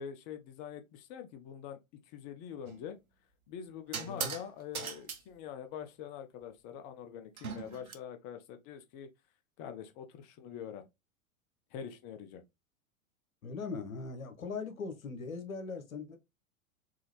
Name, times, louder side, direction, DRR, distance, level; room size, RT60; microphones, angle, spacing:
voice 1, 0.0-1.8 2.1-3.0 3.5-9.1 9.6-10.9 11.7-12.4, left 8 dB, 20° left, 0.4 m, -44 dB
sound 1, 2.7-2.9 3.9-4.5 4.7-5.2 7.4-8.0, right 6 dB, 85° right, 0.7 m, -39 dB
voice 2, 13.4-16.2, left 4 dB, 75° left, 1.0 m, -40 dB
3.8 x 2.6 x 3.0 m
figure-of-eight pair, 95°, 41 cm